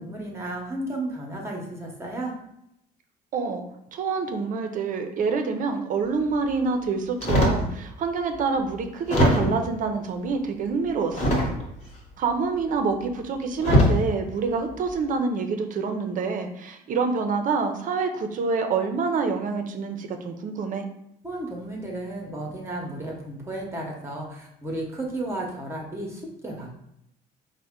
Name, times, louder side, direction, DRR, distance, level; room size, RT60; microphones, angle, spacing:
voice 1, 0.0-2.3 21.2-26.7, right 1 dB, 15° right, -1 dB, 0.8 m, -33 dB
voice 2, 3.3-3.6 3.9-11.4 12.2-20.8, right 4 dB, 50° right, 6 dB, 0.5 m, -27 dB
sound 1, 7.2-7.7 8.4-8.5 9.1-9.7 11.1-11.8 13.0-13.1 13.6-14.0 14.7-15.0, left 1 dB, 40° left, 1.1 m, -21 dB
4.1 x 2.1 x 3.6 m, 0.78 s
cardioid pair, 110°, 17 cm